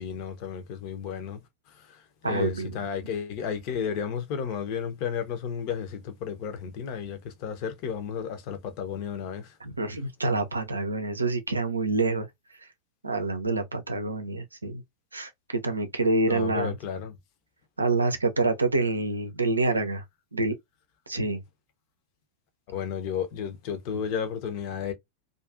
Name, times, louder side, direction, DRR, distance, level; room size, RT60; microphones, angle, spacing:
voice 1, 0.0-1.4 1.9-9.5 16.3-17.1 22.7-24.9, left 7 dB, 45° left, 0.7 m, -33 dB
voice 2, 2.2-2.8 9.6-12.3 13.0-14.8 15.1-16.8 17.8-20.0 20.3-20.6 21.1-21.4, right 3 dB, 80° right, 0.5 m, -27 dB
2.5 x 2.4 x 2.4 m
figure-of-eight pair, 90°, 0 cm